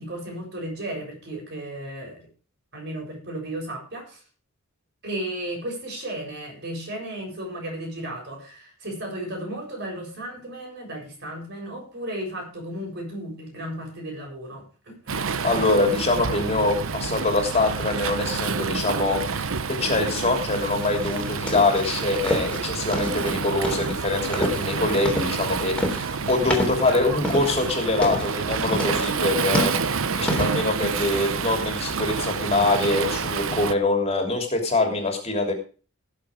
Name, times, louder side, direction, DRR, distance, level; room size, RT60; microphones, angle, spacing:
voice 1, 0.0-2.3 2.7-4.2 5.0-15.7, right 1 dB, 55° right, 1 dB, 7.4 m, -34 dB
Waves surf, 15.1-33.7, right 5 dB, 70° right, 0.9 m, -28 dB
voice 2, 15.4-19.5 19.8-35.5, left 2 dB, 30° left, 3 dB, 3.1 m, -24 dB
sound 1, 20.8-30.5, equal, 5° left, 3.5 m, -29 dB
18.5 x 7.0 x 5.0 m, 0.38 s
head